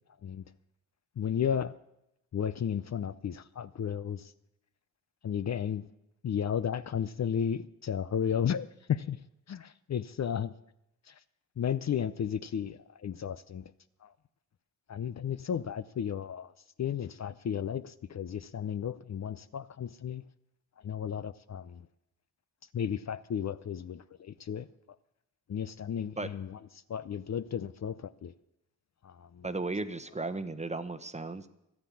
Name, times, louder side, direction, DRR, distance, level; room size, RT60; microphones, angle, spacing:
voice 1, 1.2-1.7 2.3-4.3 5.2-5.8 6.2-9.2 9.5-10.5 11.1-11.2 11.6-13.7 14.0-14.1 14.9-16.5 16.8-20.2 20.8-21.9 22.7-24.7 25.5-26.6 26.9-28.3 29.0-29.4, left 8 dB, 45° left, 14 dB, 0.6 m, -33 dB
voice 2, 29.4-31.5, right 3 dB, 20° right, 11 dB, 1.0 m, -35 dB
12.5 x 9.7 x 8.4 m, 0.85 s
cardioid pair, 80°, 38 cm